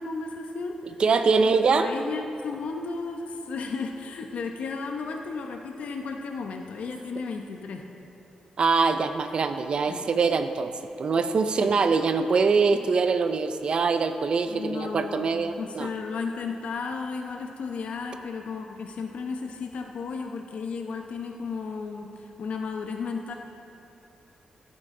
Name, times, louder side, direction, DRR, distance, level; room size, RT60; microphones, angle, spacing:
voice 1, 0.0-1.0 1.4-7.8 9.9-10.1 11.5-11.7 14.5-23.3, left 4 dB, 80° left, 3 dB, 0.8 m, -34 dB
voice 2, 1.0-1.9 8.6-10.7 11.0-15.9, right 4 dB, 45° right, 8 dB, 0.4 m, -23 dB
15.5 x 8.5 x 3.7 m, 3.0 s
wide cardioid pair, 145°, 2 cm